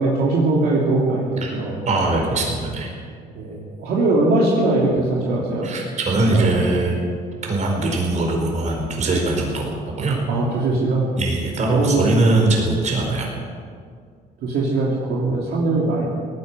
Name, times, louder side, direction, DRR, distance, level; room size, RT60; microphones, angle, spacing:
voice 1, 0.0-1.8 3.3-5.7 6.3-6.6 10.3-11.1 11.7-12.2 14.4-16.1, right 2 dB, 70° right, -4 dB, 2.8 m, -21 dB
voice 2, 1.8-2.9 5.6-6.9 7.5-9.7 10.0-10.2 11.2-13.3, right 2 dB, 45° right, 0 dB, 4.7 m, -21 dB
18.5 x 10.0 x 7.7 m, 2.1 s
cardioid pair, 110°, 17 cm